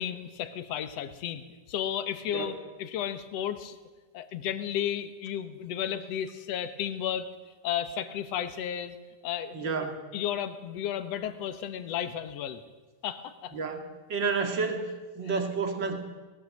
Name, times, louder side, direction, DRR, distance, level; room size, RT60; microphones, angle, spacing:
voice 1, 0.0-1.4 1.7-2.5 2.8-3.8 4.1-7.3 7.6-9.0 9.2-9.6 10.1-12.6 13.0-13.5, left 10 dB, 60° left, 10 dB, 2.0 m, -33 dB
voice 2, 9.5-10.0 13.5-16.0, right 4 dB, 40° right, 5 dB, 2.5 m, -31 dB
19.0 x 18.0 x 7.8 m, 1.2 s
omnidirectional pair, 3.7 m